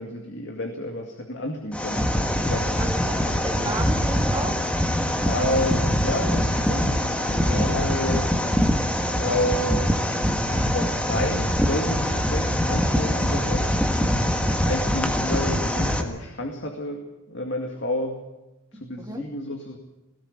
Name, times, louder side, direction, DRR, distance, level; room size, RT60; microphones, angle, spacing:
voice 1, 0.0-2.0 2.4-2.9 3.6-3.8 5.2-8.3 8.9-9.9 10.7-14.2 14.7-18.2 18.7-19.8, left 1 dB, 55° left, 3 dB, 2.2 m, -30 dB
sound 1, 1.7-16.0, equal, 5° left, 1.6 m, -23 dB
voice 2, 2.8-4.6 18.7-19.3, right 2 dB, 15° right, 2 dB, 2.7 m, -34 dB
19.0 x 17.0 x 8.7 m, 0.99 s
head